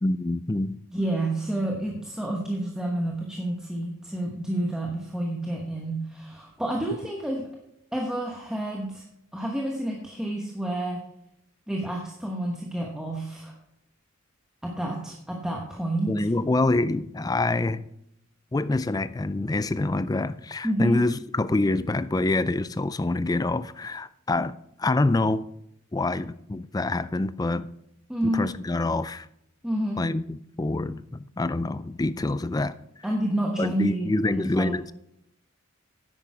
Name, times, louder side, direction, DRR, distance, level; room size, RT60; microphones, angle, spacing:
voice 1, 0.0-0.8 16.1-17.8 18.5-25.4 25.9-27.7 28.2-29.3 30.0-32.7 33.6-34.9, left 2 dB, 15° left, 0.3 m, -26 dB
voice 2, 0.9-7.5 7.9-9.0 9.3-11.0 11.7-13.5 14.6-16.3 20.6-21.0 28.1-28.5 29.6-30.1 33.0-34.7, right 1 dB, 5° right, 1.1 m, -29 dB
10.0 x 8.8 x 4.8 m
head